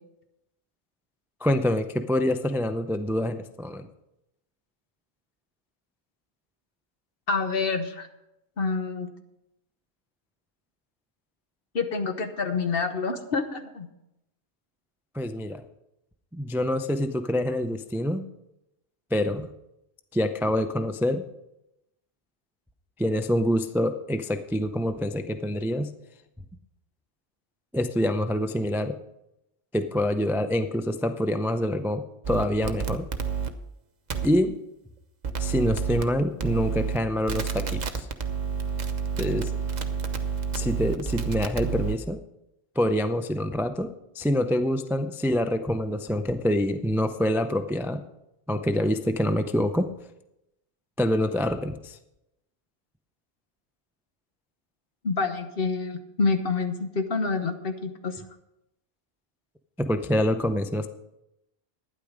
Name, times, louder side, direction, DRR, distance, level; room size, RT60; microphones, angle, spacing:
voice 1, 1.4-3.9 15.1-15.6 16.3-18.3 19.1-19.5 20.1-21.2 23.0-25.9 27.7-29.0 29.7-33.1 34.2-34.6 35.4-38.1 39.2-39.5 40.5-42.2 42.8-48.0 48.5-49.9 51.0-52.0 59.8-60.9, left 1 dB, 5° right, 8 dB, 0.3 m, -26 dB
voice 2, 7.3-8.1 8.6-9.1 11.7-13.9 55.0-58.2, left 4 dB, 60° left, 7 dB, 1.2 m, -27 dB
sound 1, 32.2-33.5 34.1-34.3 35.2-36.0 36.4-37.0 37.3-42.0, right 6 dB, 45° right, 0.9 m, -29 dB
12.0 x 9.9 x 5.0 m, 0.87 s
omnidirectional pair, 1.1 m